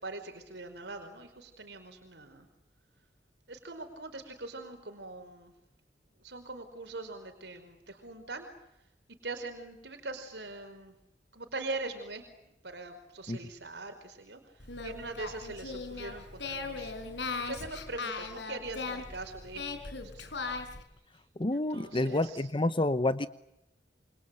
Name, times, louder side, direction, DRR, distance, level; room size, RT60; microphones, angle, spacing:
voice 1, 0.0-2.5 3.5-5.5 6.2-8.5 9.2-10.9 11.3-12.2 12.6-14.4 14.8-20.3 21.5-22.3, right 2 dB, 75° right, 6 dB, 4.9 m, -42 dB
Singing, 14.6-20.8, left 4 dB, 85° left, 4.8 m, -38 dB
voice 2, 21.4-23.3, left 2 dB, 30° left, 12 dB, 0.9 m, -29 dB
28.5 x 26.5 x 7.7 m, 0.84 s
head